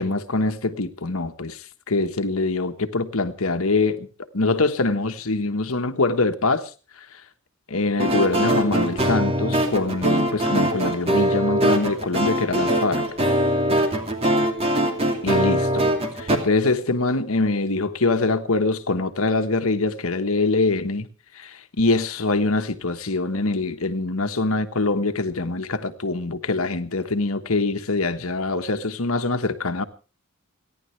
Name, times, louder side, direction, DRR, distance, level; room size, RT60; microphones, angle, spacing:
voice 1, 0.0-1.6 1.9-4.1 4.3-6.7 7.7-13.0 15.2-21.1 21.4-29.8, left 3 dB, 80° left, 1.3 m, -24 dB
sound 1, 8.0-16.4, right 1 dB, 30° right, 2.6 m, -22 dB
29.5 x 11.0 x 3.3 m
head